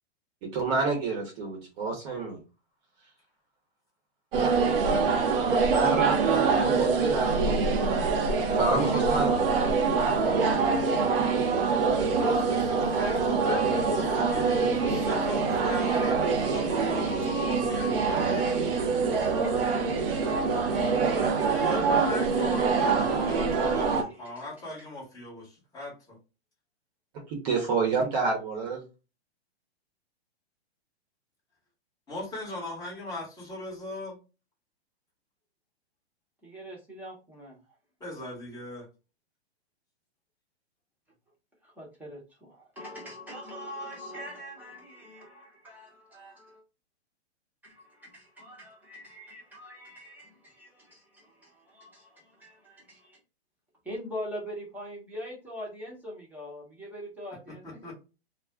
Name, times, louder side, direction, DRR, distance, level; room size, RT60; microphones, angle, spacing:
voice 1, 0.5-2.4 5.7-8.1 8.5-10.0 21.0-21.4 27.3-28.8, right 4 dB, 40° right, 0 dB, 1.0 m, -30 dB
sound 1, 4.3-24.0, right 4 dB, 60° right, 0.7 m, -25 dB
voice 2, 12.1-18.9 21.5-26.2 32.1-34.2 38.0-38.9 57.6-57.9, left 1 dB, 10° left, -4 dB, 1.1 m, -38 dB
voice 3, 13.4-21.9 22.5-24.7 36.4-37.6 41.6-46.6 47.6-53.2 53.8-57.6, equal, 5° right, -5 dB, 1.0 m, -43 dB
2.4 x 2.1 x 3.4 m, 0.31 s
hypercardioid pair, 135°, 33 cm